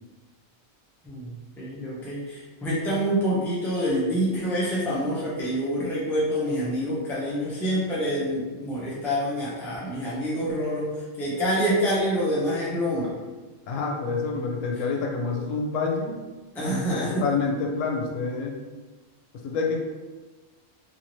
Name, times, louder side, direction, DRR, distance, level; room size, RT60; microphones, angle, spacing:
voice 1, 1.0-13.1 16.5-17.3, equal, 5° left, -8 dB, 0.3 m, -27 dB
voice 2, 13.7-16.2 17.1-18.6 19.4-19.8, left 4 dB, 75° left, 0 dB, 0.9 m, -27 dB
2.7 x 2.7 x 2.9 m, 1.3 s
omnidirectional pair, 1.4 m